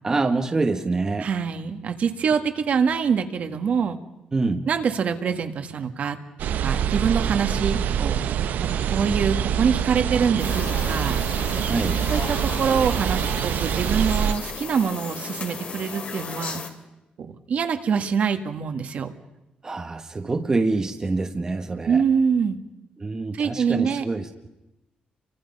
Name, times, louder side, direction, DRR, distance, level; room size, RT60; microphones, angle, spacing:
voice 1, 0.0-1.3 4.3-4.7 11.7-12.0 19.6-22.0 23.0-24.5, right 3 dB, 20° right, 5 dB, 1.2 m, -26 dB
voice 2, 1.2-4.0 4.7-6.2 6.6-8.2 8.9-11.2 12.1-16.6 17.2-19.1 21.9-22.6 23.3-24.0, right 6 dB, 55° right, 7 dB, 1.7 m, -24 dB
sound 1, 6.4-14.3, right 9 dB, 75° right, 0.8 m, -25 dB
sound 2, 10.4-16.7, left 5 dB, 50° left, 2.6 m, -35 dB
30.0 x 24.0 x 5.5 m, 0.94 s
wide cardioid pair, 160°, 3 cm